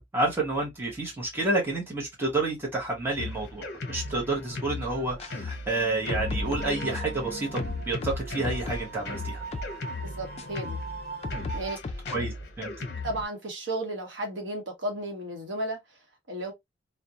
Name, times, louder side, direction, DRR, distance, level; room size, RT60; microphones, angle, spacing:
voice 1, 0.0-9.4 12.1-12.8, right 2 dB, 10° right, 0.8 m, -30 dB
Drum kit, 3.2-13.2, left 3 dB, 55° left, 0.7 m, -37 dB
sound 1, 4.9-11.8, right 4 dB, 35° right, 1.1 m, -41 dB
sound 2, 5.1-5.3 5.9-7.2 7.6-9.0 9.5-9.7 10.4-10.5 11.2-12.2, left 3 dB, 30° left, 0.3 m, -35 dB
voice 2, 10.0-10.8 11.5-12.3 13.0-15.8 16.3-16.5, right 1 dB, 65° right, 0.9 m, -34 dB
2.4 x 2.1 x 2.7 m
head